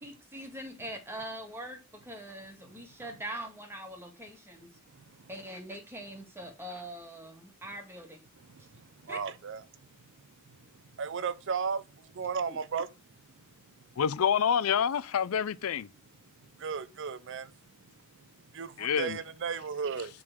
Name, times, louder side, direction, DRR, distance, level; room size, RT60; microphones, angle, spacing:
voice 1, 0.0-4.7 5.3-8.2 9.1-9.2 12.5-12.6, right 1 dB, 10° right, 1.9 m, -42 dB
voice 2, 9.1-9.6 11.0-11.8 12.2-12.9 16.6-17.4 18.5-18.7 19.0-20.1, right 6 dB, 60° right, 0.5 m, -33 dB
voice 3, 14.0-15.9 18.8-19.2, left 7 dB, 80° left, 0.4 m, -27 dB
7.6 x 3.9 x 5.7 m
head